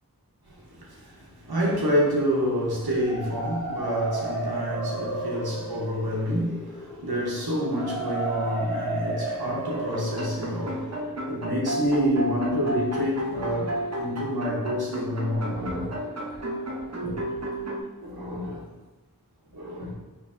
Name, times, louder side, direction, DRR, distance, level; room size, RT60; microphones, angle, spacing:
voice 1, 0.5-16.0 16.7-17.2 18.0-18.6 19.5-19.9, equal, 85° right, 1.0 m, -28 dB
sound 1, 2.8-12.7, right 2 dB, 5° left, 1.0 m, -34 dB
sound 2, 9.7-17.8, right 1 dB, 45° right, 0.7 m, -33 dB
4.8 x 2.6 x 2.4 m
wide cardioid pair, 45°, 37 cm